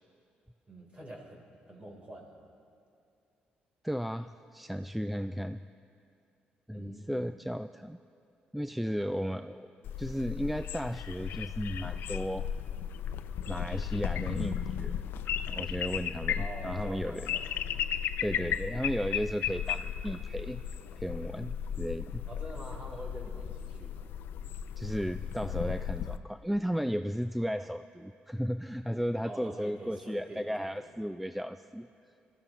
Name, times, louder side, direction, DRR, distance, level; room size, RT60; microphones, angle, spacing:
voice 1, 0.7-2.4 6.7-7.3 16.4-17.7 22.3-24.1 29.2-30.9, right 1 dB, 35° right, 0 dB, 3.6 m, -46 dB
voice 2, 3.8-5.6 6.7-8.0 8.5-12.5 13.5-15.0 15.5-17.3 18.2-20.6 21.0-22.3 24.8-31.9, equal, 5° right, 10 dB, 0.3 m, -34 dB
sound 1, 9.8-26.2, left 9 dB, 75° left, 0.4 m, -35 dB
23.5 x 15.0 x 3.0 m, 2.5 s
cardioid pair, 80°, 4 cm